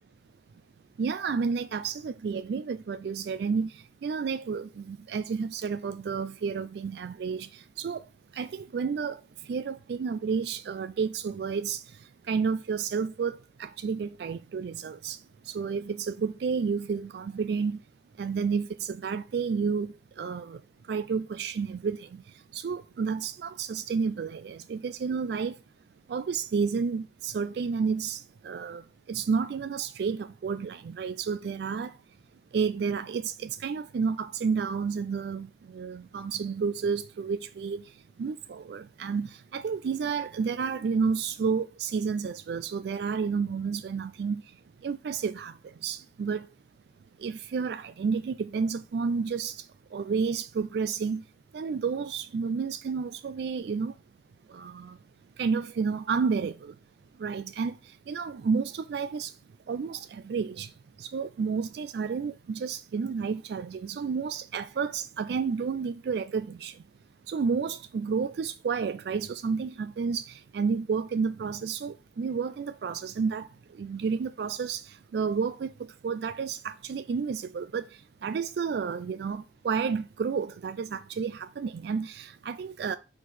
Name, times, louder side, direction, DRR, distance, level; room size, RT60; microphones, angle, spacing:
voice 1, 1.0-8.0 8.3-11.8 12.3-15.2 15.4-17.8 18.2-20.6 20.9-22.2 22.5-25.6 26.1-32.0 32.5-37.8 38.2-44.4 44.8-46.5 47.2-49.7 49.9-51.2 51.5-53.9 54.5-55.0 55.4-56.7 57.2-57.8 58.1-59.3 59.7-60.7 61.0-66.8 67.3-73.5 73.8-75.7 76.0-77.9 78.2-83.0, right 5 dB, 65° right, 0.3 m, -31 dB
6.4 x 4.5 x 4.1 m
head